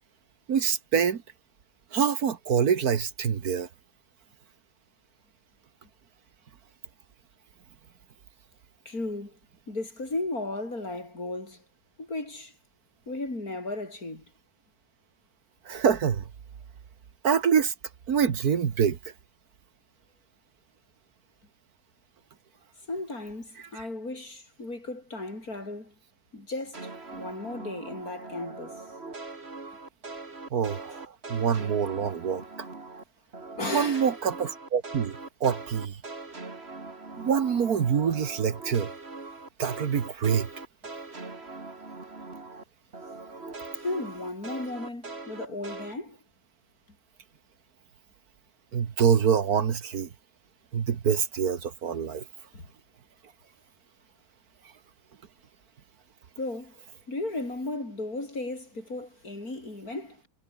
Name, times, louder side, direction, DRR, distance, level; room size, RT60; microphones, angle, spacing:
voice 1, 0.5-1.2 1.9-3.7 15.7-16.3 17.2-17.7 18.1-19.0 23.7-23.9 30.5-32.7 33.7-36.0 37.2-38.9 39.6-40.5 48.7-50.1 50.7-52.2, right 7 dB, 70° right, 1.9 m, -25 dB
voice 2, 8.9-9.4 9.7-11.6 12.0-12.5 13.1-14.2 22.9-25.9 26.3-28.8 33.6-34.1 43.7-46.2 52.5-52.7 56.4-60.3, left 2 dB, 65° left, 7.2 m, -35 dB
sound 1, 26.7-33.0 33.3-42.6 42.9-45.9, right 3 dB, 40° right, 3.0 m, -41 dB
omnidirectional pair, 1.7 m